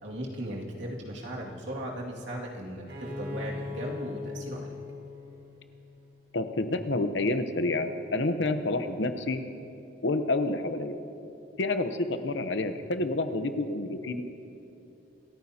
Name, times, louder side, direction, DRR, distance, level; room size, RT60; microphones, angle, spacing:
voice 1, 0.0-4.7, equal, 70° right, -3 dB, 2.2 m, -37 dB
Bowed string instrument, 2.9-6.5, left 3 dB, 50° right, 1.9 m, -40 dB
voice 2, 6.3-9.4 10.0-11.0 11.6-14.2, left 2 dB, 70° left, 8 dB, 0.8 m, -28 dB
27.5 x 14.0 x 2.9 m, 2.8 s
head